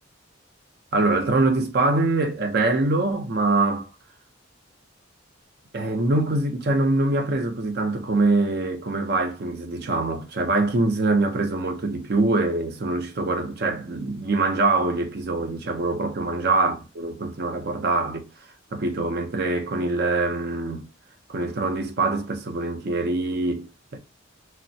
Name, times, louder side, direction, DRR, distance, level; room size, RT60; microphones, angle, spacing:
voice 1, 0.9-3.9 5.7-18.3 18.7-20.9 21.3-24.0, right 2 dB, 50° right, 0.5 m, -24 dB
3.1 x 2.0 x 2.6 m
head